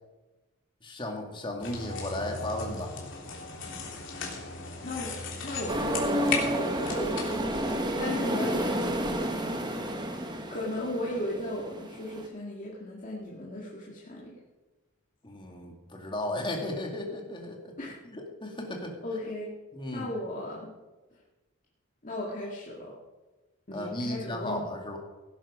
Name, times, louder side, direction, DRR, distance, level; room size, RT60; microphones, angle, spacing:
voice 1, 0.8-2.9 15.2-17.7 18.0-19.0 19.7-20.1 23.7-25.0, left 1 dB, 25° left, 1 dB, 2.4 m, -35 dB
sound 1, 1.6-7.8, left 4 dB, 60° left, 3.2 m, -37 dB
voice 2, 4.8-5.1 5.4-9.8 10.5-14.4 17.8-17.9 19.0-19.6 19.9-20.7 21.1-21.2 22.0-23.0 23.7-24.7, left 1 dB, 40° left, -5 dB, 2.2 m, -36 dB
sound 2, 5.7-12.3, right 1 dB, 20° right, 1.3 m, -31 dB
17.0 x 10.0 x 5.1 m, 1.2 s
head